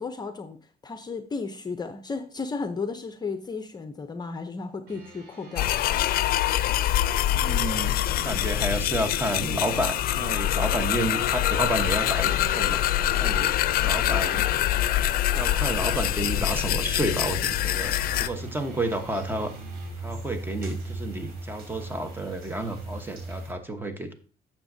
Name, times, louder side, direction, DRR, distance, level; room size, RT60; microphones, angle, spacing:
voice 1, 0.0-5.8, left 4 dB, 25° left, 8 dB, 0.7 m, -34 dB
sound 1, 4.9-19.9, right 3 dB, 90° right, 5.3 m, -46 dB
sound 2, 5.6-18.3, left 12 dB, 60° left, 0.5 m, -25 dB
voice 2, 7.3-12.8 13.2-14.5 15.3-19.5 20.0-24.1, right 1 dB, 10° right, 7 dB, 1.2 m, -31 dB
sound 3, 16.7-23.5, right 2 dB, 70° right, 3.4 m, -39 dB
11.0 x 7.2 x 2.7 m, 0.38 s
cardioid pair, 110°, 17 cm